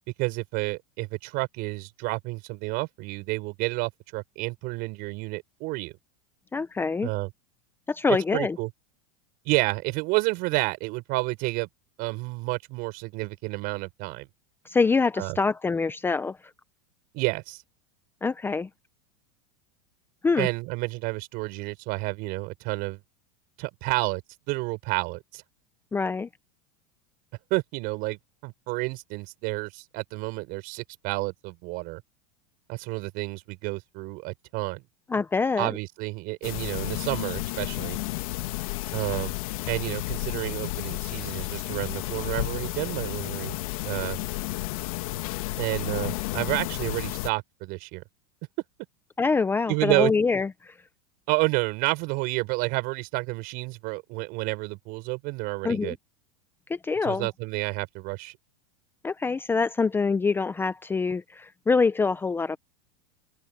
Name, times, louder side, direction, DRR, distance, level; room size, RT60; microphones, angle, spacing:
voice 1, 0.2-5.9 7.0-7.3 8.1-8.7 9.4-11.7 12.0-14.3 15.2-15.4 17.1-17.6 20.4-23.0 23.6-24.2 24.5-25.4 27.5-32.0 32.7-34.8 35.6-38.0 38.9-39.3 39.7-43.6 43.8-44.2 45.6-48.0 49.7-50.1 51.3-56.0 57.0-58.4, right 25 dB, 50° right, 7.4 m, -30 dB
voice 2, 6.5-7.1 7.9-8.6 14.7-16.4 18.2-18.7 20.2-20.5 25.9-26.3 35.1-35.8 49.2-50.7 55.6-56.0 56.7-57.3 59.0-62.6, left 4 dB, 10° left, 0.7 m, -25 dB
sound 1, 36.4-47.3, left 19 dB, 70° left, 1.7 m, -32 dB
open air
supercardioid pair, 135°, 19 cm